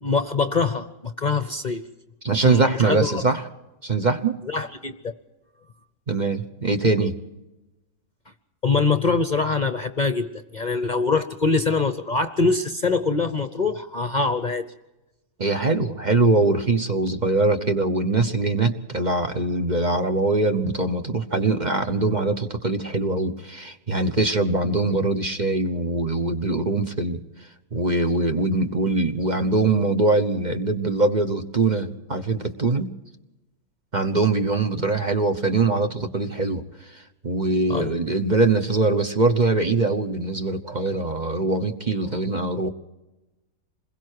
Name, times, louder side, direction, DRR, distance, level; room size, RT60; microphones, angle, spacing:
voice 1, 0.0-1.9 2.4-3.2 4.5-5.1 8.6-14.7 37.7-37.9, left 4 dB, 35° left, 9 dB, 0.9 m, -24 dB
voice 2, 2.2-3.5 3.8-4.4 6.1-7.2 15.4-27.2 27.7-32.9 33.9-42.7, right 3 dB, 35° right, 7 dB, 1.1 m, -22 dB
27.5 x 21.5 x 4.7 m, 1.0 s
omnidirectional pair, 1.5 m